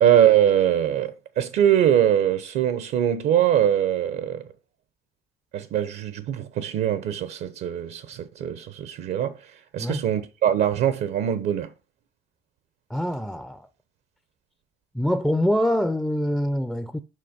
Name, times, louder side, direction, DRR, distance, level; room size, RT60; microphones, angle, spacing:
voice 1, 0.0-4.4 5.5-11.7, right 10 dB, 75° right, 0.9 m, -22 dB
voice 2, 12.9-13.7 14.9-17.0, equal, 5° left, 0.5 m, -24 dB
7.7 x 5.8 x 5.1 m
cardioid pair, 110°, 17 cm